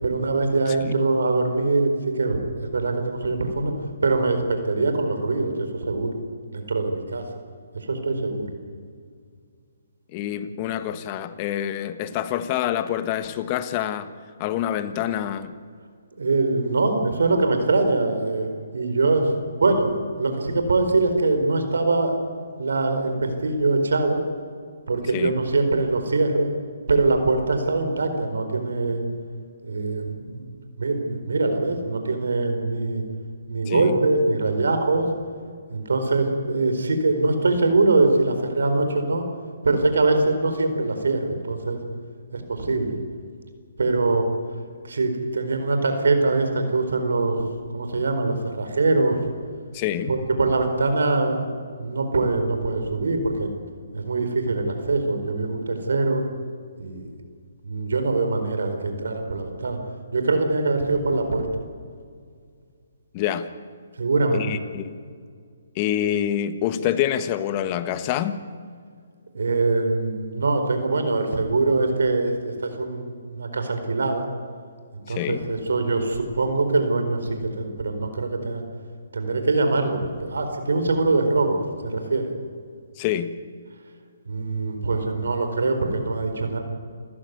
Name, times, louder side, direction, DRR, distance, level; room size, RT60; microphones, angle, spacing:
voice 1, 0.0-3.7 4.0-5.5 5.9-6.1 6.5-7.2 7.7-8.5 16.2-18.5 18.7-22.2 22.6-24.2 24.9-26.5 26.9-29.0 29.6-30.5 30.8-33.0 33.5-35.1 35.7-39.2 39.6-41.8 42.3-43.0 43.8-44.3 44.8-47.4 47.7-49.2 50.1-51.5 51.8-53.6 53.9-56.2 56.8-57.1 57.6-59.8 60.1-61.5 64.0-64.5 69.3-74.3 74.9-78.6 79.1-82.3 84.3-86.6, right 3 dB, 80° right, 7 dB, 4.5 m, -23 dB
voice 2, 10.1-14.1 14.4-15.5 25.1-25.3 33.7-33.9 49.7-50.1 63.1-63.5 64.3-64.9 65.7-68.4 75.1-75.5 83.0-83.3, left 11 dB, 30° left, 11 dB, 1.5 m, -26 dB
28.0 x 15.0 x 9.5 m, 2.1 s
hypercardioid pair, 145°, 0 cm